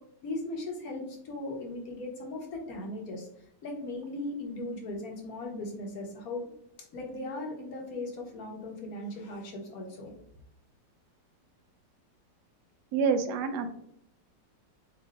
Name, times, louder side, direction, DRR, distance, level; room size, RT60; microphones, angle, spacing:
voice 1, 0.2-3.3 3.6-6.4 6.9-10.1, left 2 dB, 60° left, 1 dB, 1.4 m, -38 dB
voice 2, 12.9-13.7, right 5 dB, 75° right, 7 dB, 1.1 m, -27 dB
7.3 x 2.7 x 2.4 m, 0.71 s
omnidirectional pair, 1.9 m